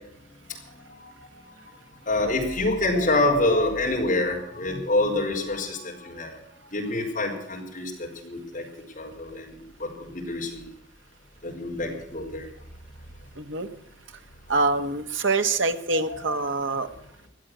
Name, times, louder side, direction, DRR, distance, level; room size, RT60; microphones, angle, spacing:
voice 1, 2.1-6.4 6.7-8.6 9.0-10.7 11.4-12.5 15.9-16.4, left 2 dB, 40° left, 0 dB, 4.8 m, -27 dB
voice 2, 13.4-13.7 14.5-16.9, right 3 dB, 75° right, 7 dB, 1.5 m, -25 dB
17.5 x 12.0 x 6.3 m, 0.72 s
head